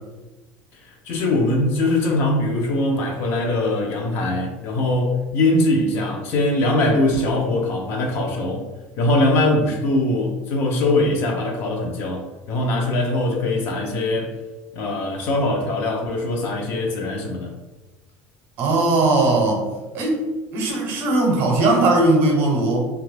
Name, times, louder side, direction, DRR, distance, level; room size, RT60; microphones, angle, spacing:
voice 1, 0.8-8.7 9.0-14.3 14.7-17.5, left 2 dB, 40° left, 2 dB, 0.5 m, -22 dB
voice 2, 18.6-19.6 19.9-20.2 20.5-22.9, right 2 dB, 45° right, 0 dB, 0.7 m, -18 dB
2.8 x 2.3 x 3.2 m, 1.1 s
cardioid pair, 170°, 6 cm